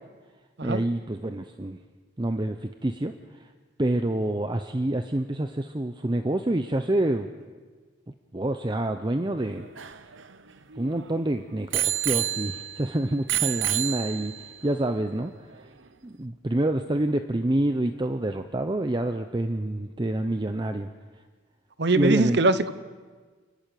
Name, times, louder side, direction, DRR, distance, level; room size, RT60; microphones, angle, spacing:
voice 1, 0.6-1.8 2.2-3.1 3.8-7.3 8.3-9.6 10.8-14.3 14.6-15.3 16.0-20.9 21.9-22.4, right 1 dB, 25° right, 7 dB, 0.7 m, -27 dB
Bicycle bell, 9.4-11.1 11.7-12.9 13.3-14.5 15.3-15.4, right 13 dB, 85° right, 0.9 m, -29 dB
voice 2, 21.8-22.7, right 2 dB, 60° right, 13 dB, 0.9 m, -22 dB
29.0 x 12.0 x 9.2 m, 1.5 s
head